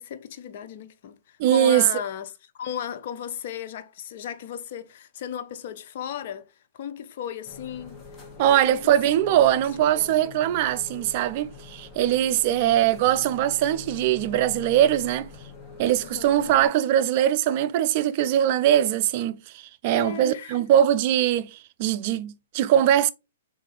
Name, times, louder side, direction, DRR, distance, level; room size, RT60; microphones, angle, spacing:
voice 1, 0.0-8.0 8.4-8.9 9.3-10.2 12.5-12.8 16.0-16.6 19.9-20.6, left 9 dB, 55° left, 0.6 m, -36 dB
voice 2, 1.4-1.8 8.4-15.3 15.8-23.1, right 11 dB, 45° right, 0.3 m, -21 dB
sound 1, 7.4-16.7, left 5 dB, 20° left, 1.1 m, -44 dB
3.7 x 2.5 x 4.0 m
hypercardioid pair, 135°, 0 cm